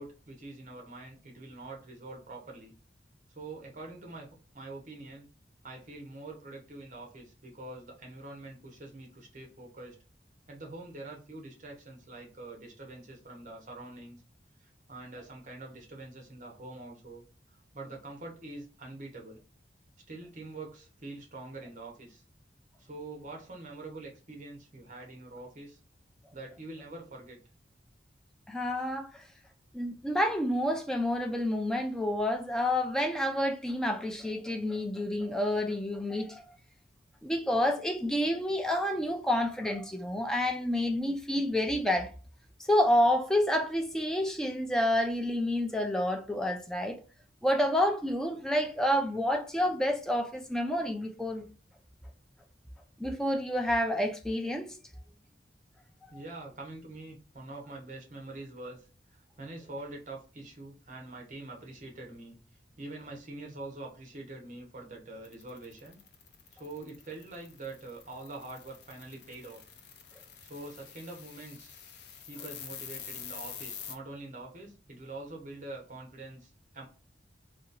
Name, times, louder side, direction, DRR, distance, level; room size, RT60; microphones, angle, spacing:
voice 1, 0.0-2.7 3.3-4.3 4.5-5.3 5.6-10.0 10.5-14.2 14.6-17.2 17.7-19.4 20.1-22.2 22.8-25.8 26.3-27.4 55.1-55.2 56.1-58.8 59.1-62.4 62.8-66.0 66.5-69.6 70.4-71.8 72.2-76.9, right 2 dB, 45° right, 0.8 m, -45 dB
voice 2, 28.5-29.1 29.7-36.5 37.2-42.1 42.7-47.0 47.4-51.5 53.0-54.7, left 1 dB, 5° left, 0.3 m, -29 dB
sound 1, 65.2-73.9, left 8 dB, 65° left, 0.5 m, -47 dB
2.8 x 2.3 x 2.5 m
head